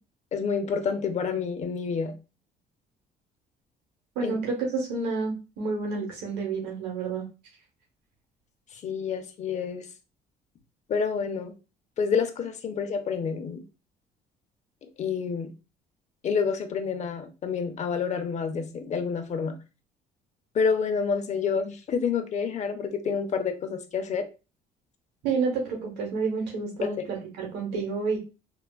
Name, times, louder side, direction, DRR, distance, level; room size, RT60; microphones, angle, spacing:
voice 1, 0.3-2.1 4.2-4.4 8.8-9.9 10.9-11.5 12.0-13.6 15.0-15.5 16.2-19.6 20.5-24.2 26.8-26.9, left 6 dB, 45° left, 0.6 m, -28 dB
voice 2, 4.1-7.2 25.2-28.2, right 4 dB, 85° right, 0.9 m, -29 dB
3.3 x 2.3 x 2.2 m
cardioid pair, 110°, 17 cm